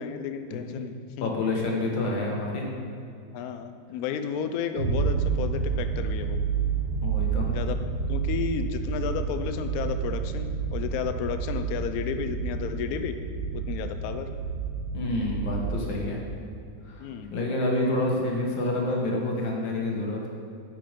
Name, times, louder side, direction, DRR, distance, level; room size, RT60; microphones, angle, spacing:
voice 1, 0.0-1.3 3.3-6.4 7.5-7.8 8.1-13.2 13.5-14.3 17.0-17.3, left 7 dB, 85° left, 8 dB, 0.8 m, -32 dB
voice 2, 1.2-2.7 7.0-7.5 14.9-16.2 16.9-20.3, left 2 dB, 70° left, -1 dB, 2.0 m, -28 dB
sound 1, 4.8-15.9, right 5 dB, 35° right, 1.5 m, -29 dB
9.7 x 5.1 x 5.0 m, 2.5 s
omnidirectional pair, 2.2 m